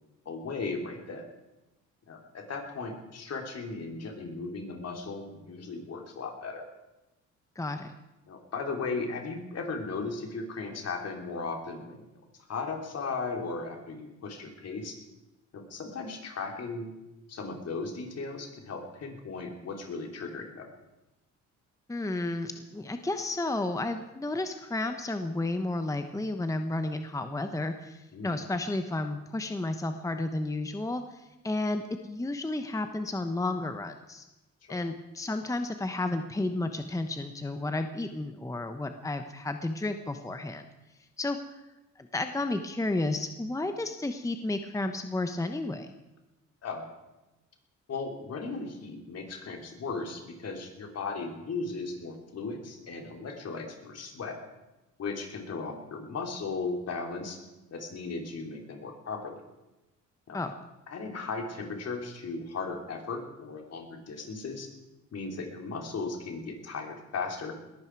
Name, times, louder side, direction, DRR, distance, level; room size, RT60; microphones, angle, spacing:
voice 1, 0.3-1.2 2.1-6.6 8.3-12.0 12.5-15.0 15.5-16.9 17.3-20.7 28.1-28.4 34.7-34.8 46.6-46.9 47.9-54.4 55.0-57.4 57.7-59.4 60.3-60.4 60.9-64.7 65.1-67.7, left 4 dB, 55° left, 3 dB, 3.5 m, -36 dB
voice 2, 7.6-7.9 21.9-34.2 34.7-40.7 41.2-41.4 42.0-45.9 60.3-60.5, left 2 dB, 10° left, 7 dB, 1.0 m, -32 dB
20.5 x 15.0 x 4.7 m, 1.0 s
cardioid pair, 90°, 30 cm